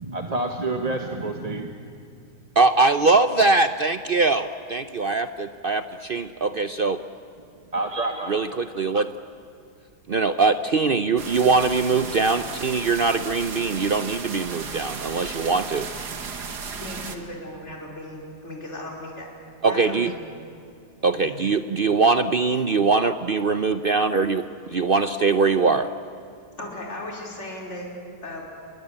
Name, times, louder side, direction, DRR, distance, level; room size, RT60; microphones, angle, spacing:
voice 1, 0.0-1.7 7.7-8.4, right 2 dB, 25° right, 4 dB, 1.2 m, -28 dB
voice 2, 2.6-7.0 8.3-9.1 10.1-15.9 19.6-20.1 21.0-25.9, right 4 dB, 50° right, 10 dB, 0.6 m, -22 dB
sound 1, 11.2-17.2, right 5 dB, 85° right, 2.4 m, -35 dB
voice 3, 16.8-19.3 19.7-20.3 21.1-21.4 26.6-28.4, left 1 dB, 45° left, -1 dB, 5.1 m, -37 dB
29.0 x 22.0 x 8.7 m, 2.5 s
omnidirectional pair, 1.7 m